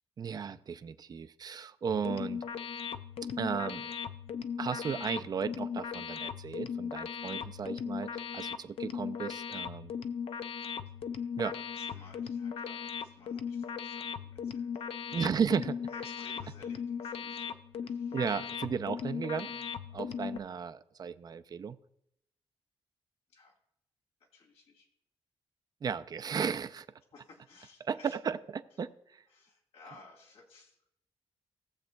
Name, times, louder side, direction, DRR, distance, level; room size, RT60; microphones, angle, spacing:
voice 1, 0.2-2.5 3.4-3.9 4.6-9.9 11.4-11.5 15.1-15.8 18.1-19.6 19.9-21.8 25.8-26.9 27.9-29.2, right 6 dB, 40° right, 11 dB, 0.4 m, -35 dB
sound 1, 1.9-20.4, left 7 dB, 70° left, 0.5 m, -38 dB
voice 2, 11.1-15.5 15.9-18.2 23.3-23.6 24.2-24.9 27.1-28.2 29.3-30.9, left 3 dB, 90° left, -1 dB, 2.6 m, -57 dB
18.0 x 7.3 x 2.3 m, 0.78 s
wide cardioid pair, 130°, 10 cm